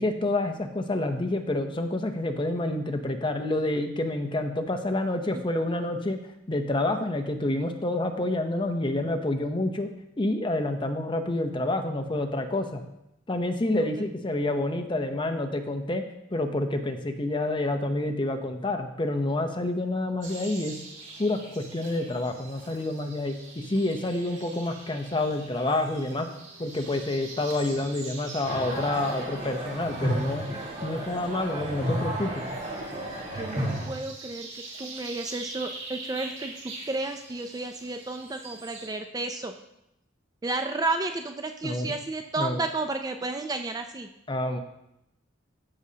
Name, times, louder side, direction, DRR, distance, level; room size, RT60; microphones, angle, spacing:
voice 1, 0.0-6.2 6.5-9.9 10.2-12.8 13.3-16.0 16.3-20.8 21.2-23.3 23.7-26.3 26.6-30.4 30.8-32.4 41.6-41.9 42.4-42.6 44.3-44.6, left 2 dB, 25° left, 6 dB, 0.7 m, -28 dB
sound 1, 20.2-38.9, right 3 dB, 65° right, 2.0 m, -44 dB
sound 2, 28.4-33.9, equal, 35° right, 1.8 m, -32 dB
voice 2, 33.3-36.5 36.9-39.5 40.4-44.1, right 2 dB, 20° right, 6 dB, 0.4 m, -32 dB
13.5 x 6.2 x 2.8 m, 0.84 s
head